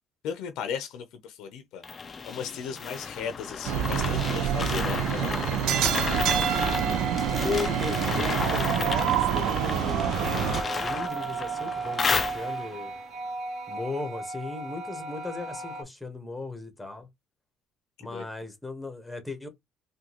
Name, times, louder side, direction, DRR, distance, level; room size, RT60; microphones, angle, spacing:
voice 1, 0.2-1.8 2.2-5.4 18.0-18.2, left 7 dB, 80° left, 0.6 m, -36 dB
sound 1, 1.8-12.8, left 5 dB, 35° left, 0.4 m, -32 dB
sound 2, 3.6-10.6, right 10 dB, 80° right, 0.3 m, -27 dB
sound 3, 6.1-15.8, right 4 dB, 45° right, 1.3 m, -35 dB
voice 2, 7.4-12.9 13.7-17.1 18.0-19.5, left 3 dB, 5° left, 1.2 m, -36 dB
3.6 x 2.4 x 2.9 m
cardioid pair, 105°, 0 cm